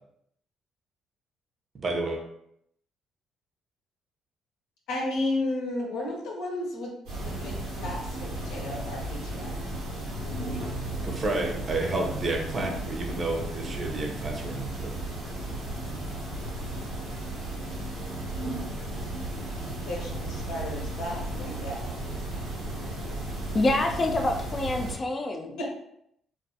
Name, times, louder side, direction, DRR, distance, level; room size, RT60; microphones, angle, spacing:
voice 1, 1.8-2.2 11.0-14.9, right 2 dB, 45° right, 2 dB, 0.6 m, -30 dB
voice 2, 4.9-6.9 7.3-9.6 19.8-21.9 25.6-25.7, left 2 dB, 80° left, -2 dB, 0.6 m, -33 dB
sound 1, 7.1-25.0, right 1 dB, 90° right, 1.0 m, -34 dB
voice 3, 23.5-25.6, left 2 dB, 35° left, 3 dB, 0.4 m, -26 dB
2.3 x 2.3 x 2.7 m, 0.73 s
supercardioid pair, 65°, 0 cm